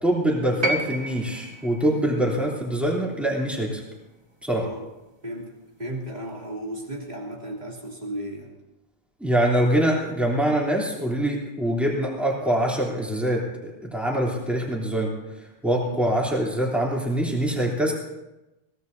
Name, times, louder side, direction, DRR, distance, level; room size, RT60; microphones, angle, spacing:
voice 1, 0.0-3.8 4.4-4.7 9.2-15.2 15.6-17.9, right 1 dB, ahead, -3 dB, 3.3 m, -24 dB
sound 1, 0.6-4.8 6.0-6.1, right 1 dB, 25° right, 1.5 m, -33 dB
voice 2, 5.2-8.5 15.8-16.1, right 1 dB, 40° right, -2 dB, 3.1 m, -35 dB
22.5 x 17.0 x 2.8 m, 1.0 s
omnidirectional pair, 1.1 m